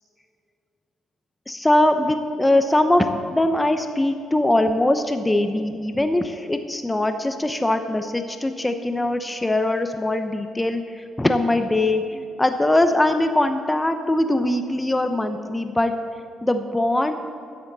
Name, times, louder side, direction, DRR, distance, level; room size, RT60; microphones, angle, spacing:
voice 1, 1.5-15.9 16.4-17.1, left 1 dB, 15° left, 7 dB, 0.8 m, -21 dB
15.0 x 11.0 x 4.1 m, 2.4 s
cardioid pair, 90°, 0 cm